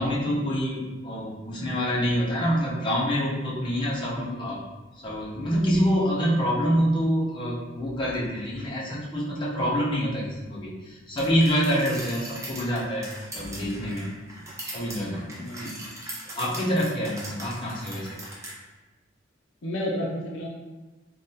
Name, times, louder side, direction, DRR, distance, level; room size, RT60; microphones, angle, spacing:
voice 1, 0.0-4.6 5.0-13.1 13.3-14.1 14.6-15.5 16.3-18.2, equal, 25° left, -6 dB, 0.7 m, -26 dB
voice 2, 4.1-4.5 15.4-15.9 19.6-20.5, left 1 dB, 80° left, -1 dB, 0.5 m, -32 dB
sound 1, 11.2-18.5, right 1 dB, 15° right, 0.6 m, -40 dB
3.5 x 2.3 x 2.7 m, 1.2 s
head